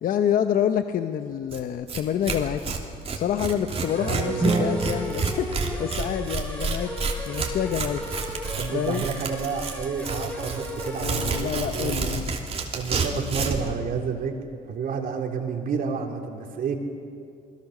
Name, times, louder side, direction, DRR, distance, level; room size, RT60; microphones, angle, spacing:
voice 1, 0.0-2.8 3.1-6.9 7.3-8.0 8.7-9.0 11.0-12.3, left 9 dB, 55° left, 8 dB, 0.9 m, -27 dB
Tearing, 1.5-1.6 1.9-13.7, right 4 dB, 35° right, 3.1 m, -30 dB
sound 1, 3.8-11.4, left 1 dB, 10° left, 4.7 m, -36 dB
voice 2, 4.0-4.8 8.6-12.1 12.7-14.4 14.7-16.8, right 6 dB, 55° right, 2 dB, 3.5 m, -30 dB
sound 2, 4.4-6.6, right 3 dB, 15° right, 0.5 m, -29 dB
28.5 x 20.0 x 6.7 m, 2.4 s
cardioid pair, 110°, 17 cm